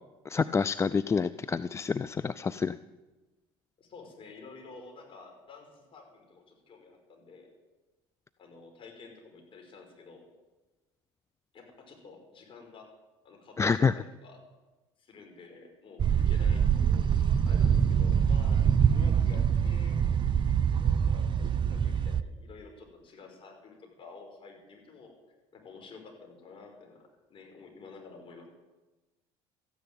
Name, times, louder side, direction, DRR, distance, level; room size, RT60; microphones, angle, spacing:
voice 1, 0.3-2.8 13.6-13.9, left 5 dB, 20° left, 15 dB, 0.4 m, -27 dB
voice 2, 3.8-7.5 8.4-10.2 11.5-12.9 13.2-14.4 15.0-18.6 18.9-20.0 20.7-25.1 25.5-28.5, left 4 dB, 40° left, 2 dB, 5.4 m, -50 dB
sound 1, 16.0-22.2, right 8 dB, 40° right, 0.7 m, -25 dB
14.0 x 10.5 x 9.0 m, 1.2 s
supercardioid pair, 90°, 13 cm